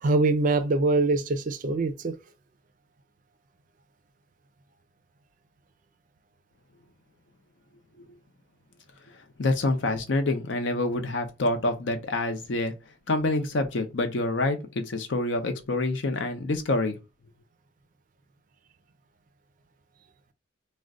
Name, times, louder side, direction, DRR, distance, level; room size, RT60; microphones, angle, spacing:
voice 1, 0.0-2.2, right 3 dB, 45° right, 0.4 m, -23 dB
voice 2, 9.4-12.8 13.1-17.0, left 2 dB, 70° left, 0.6 m, -27 dB
2.4 x 2.1 x 3.6 m
head